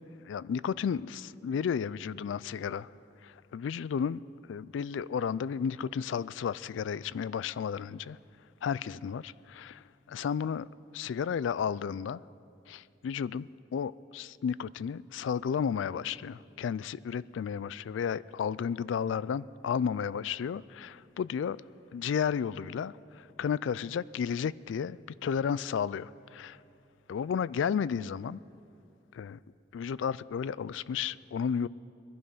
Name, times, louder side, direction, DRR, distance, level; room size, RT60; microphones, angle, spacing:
voice 1, 0.2-2.9 3.2-4.2 4.5-8.2 8.6-10.7 10.9-12.2 12.7-21.6 21.9-26.6 27.1-28.4 29.1-29.4 29.7-31.7, left 7 dB, 85° left, 0.3 m, -33 dB
21.0 x 12.0 x 5.4 m
head